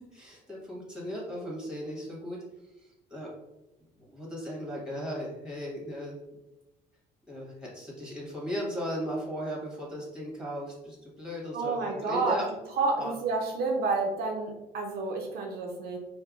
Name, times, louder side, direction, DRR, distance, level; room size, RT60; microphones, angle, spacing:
voice 1, 0.1-2.4 2.8-3.3 4.0-6.2 7.3-12.4 13.0-13.1, equal, 5° right, -4 dB, 1.3 m, -37 dB
voice 2, 11.5-12.4 12.8-16.0, right 3 dB, 70° right, 0 dB, 0.6 m, -29 dB
4.6 x 2.2 x 2.4 m, 1.0 s
cardioid pair, 110°, 17 cm